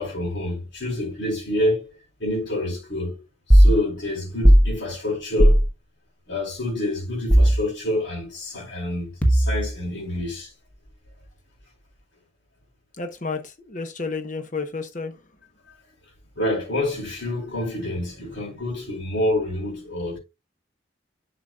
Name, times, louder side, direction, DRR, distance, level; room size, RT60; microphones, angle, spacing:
voice 1, 0.0-1.9 2.2-3.2 3.5-5.6 6.3-10.5 16.4-20.2, left 1 dB, 70° left, 4.4 m, -27 dB
sound 1, 3.5-3.8 4.4-4.7 5.4-5.7 7.3-7.6 9.2-9.7, equal, 5° left, 1.1 m, -14 dB
voice 2, 13.0-15.1, left 4 dB, 40° left, 1.1 m, -31 dB
11.5 x 5.9 x 2.4 m
head